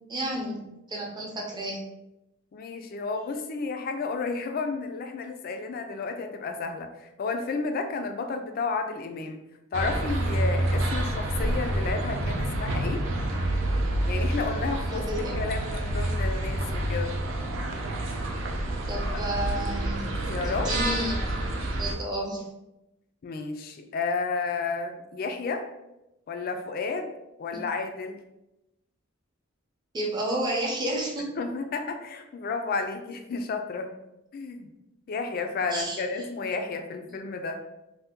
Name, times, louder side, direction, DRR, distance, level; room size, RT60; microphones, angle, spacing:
voice 1, 0.1-1.8 14.9-15.3 18.9-20.1 20.4-21.4 21.7-22.5 27.5-27.6 29.9-31.3 35.7-36.0, right 1 dB, 20° right, -2 dB, 0.6 m, -31 dB
voice 2, 2.5-9.4 9.7-13.0 14.1-15.1 15.4-17.1 19.1-19.2 20.3-20.7 23.2-25.6 26.3-27.1 27.4-28.2 31.4-33.9 34.3-34.7 35.1-37.6, left 4 dB, 45° left, 5 dB, 0.3 m, -32 dB
sound 1, 9.7-21.9, right 1 dB, 65° right, 0.5 m, -28 dB
2.7 x 2.2 x 3.5 m, 0.91 s
head